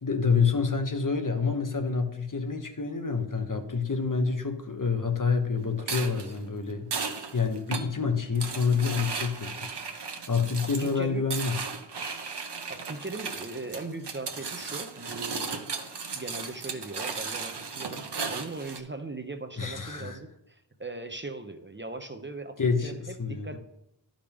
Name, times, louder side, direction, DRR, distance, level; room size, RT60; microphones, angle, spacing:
voice 1, 0.0-6.9 7.3-11.6 19.6-20.2 22.6-23.6, left 5 dB, 45° left, 5 dB, 1.0 m, -28 dB
sound 1, 5.8-18.8, right 5 dB, 70° right, 0.9 m, -36 dB
voice 2, 10.6-11.2 12.7-15.5 16.1-23.6, right 2 dB, 25° right, 7 dB, 0.7 m, -39 dB
12.0 x 5.2 x 3.5 m, 0.80 s
wide cardioid pair, 45°, 42 cm